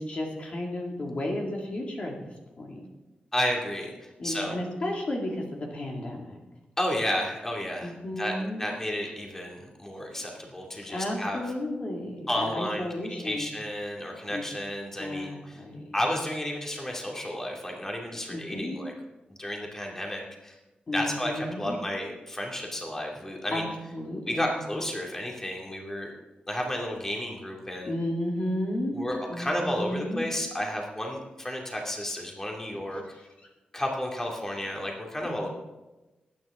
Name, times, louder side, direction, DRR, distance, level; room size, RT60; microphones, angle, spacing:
voice 1, 0.0-2.1 2.6-2.9 4.2-6.4 7.8-8.6 10.9-13.5 14.3-14.4 15.0-16.0 18.3-18.8 20.9-21.8 23.5-23.7 23.9-24.6 27.8-29.0 29.3-30.3 35.2-35.4, left 1 dB, 45° left, 0 dB, 2.3 m, -33 dB
voice 2, 3.3-4.6 6.8-11.4 12.3-15.6 15.9-18.9 19.3-20.6 20.9-23.6 24.3-26.1 26.5-27.9 28.9-33.0 33.7-35.5, left 1 dB, 15° left, -1 dB, 2.4 m, -32 dB
20.0 x 9.4 x 3.7 m, 1.1 s
wide cardioid pair, 105°, 3 cm